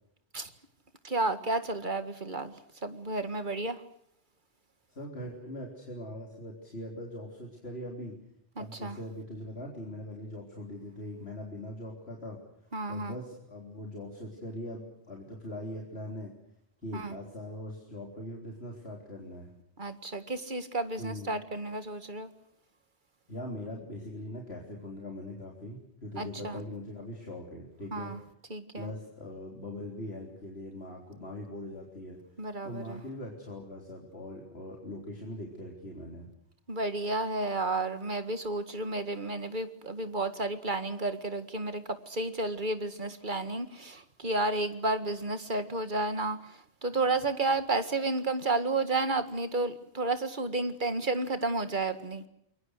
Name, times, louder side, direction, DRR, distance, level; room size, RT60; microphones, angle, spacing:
voice 1, 1.0-2.5 2.8-3.8 8.6-9.0 12.7-13.1 16.9-17.2 19.8-22.3 26.2-26.6 27.9-28.2 28.5-28.9 32.4-33.0 36.7-52.2, right 2 dB, 45° right, 10 dB, 2.0 m, -32 dB
voice 2, 4.9-8.2 8.6-12.4 12.9-16.3 16.8-19.5 21.0-21.4 23.3-28.1 28.7-32.2 32.6-36.3, left 1 dB, 70° left, 0 dB, 4.1 m, -41 dB
29.0 x 23.0 x 6.5 m, 0.74 s
omnidirectional pair, 1.1 m